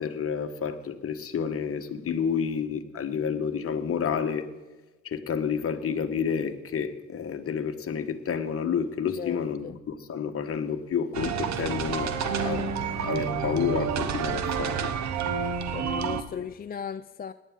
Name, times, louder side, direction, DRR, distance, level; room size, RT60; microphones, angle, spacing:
voice 1, 0.0-4.5 5.0-12.7 13.0-14.9, left 7 dB, 50° left, 7 dB, 1.2 m, -30 dB
voice 2, 9.2-9.8 15.7-17.3, left 7 dB, 30° left, 10 dB, 0.4 m, -36 dB
sound 1, 11.1-16.2, right 6 dB, 65° right, 1.0 m, -29 dB
18.0 x 10.5 x 3.7 m, 1.2 s
cardioid pair, 90°, 30 cm